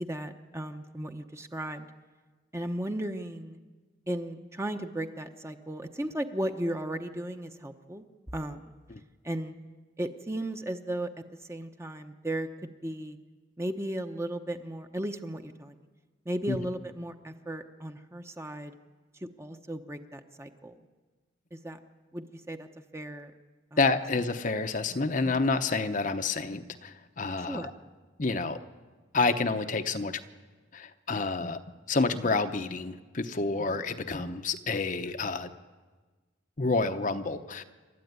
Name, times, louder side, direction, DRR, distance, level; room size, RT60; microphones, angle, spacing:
voice 1, 0.0-1.9 2.5-3.6 4.1-8.0 8.3-8.7 9.2-9.5 10.0-11.1 11.5-13.2 13.6-15.8 16.2-18.8 19.2-20.8 21.5-21.8 22.1-22.7 22.9-23.3 23.7-23.8 27.5-27.7, right 1 dB, 15° right, 6 dB, 0.9 m, -35 dB
voice 2, 23.8-27.7 28.2-28.6 29.1-30.2 30.7-31.6 31.9-35.5 36.6-37.6, left 3 dB, 40° left, 7 dB, 0.9 m, -29 dB
27.5 x 13.0 x 9.6 m, 1.4 s
head